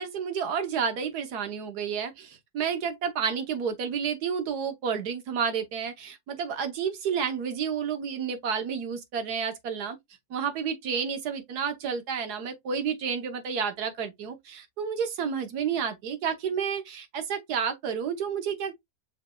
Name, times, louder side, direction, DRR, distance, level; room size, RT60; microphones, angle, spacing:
voice 1, 0.0-10.0 10.3-18.8, right 7 dB, 75° right, 1.5 m, -30 dB
6.4 x 3.2 x 2.2 m
omnidirectional pair, 1.7 m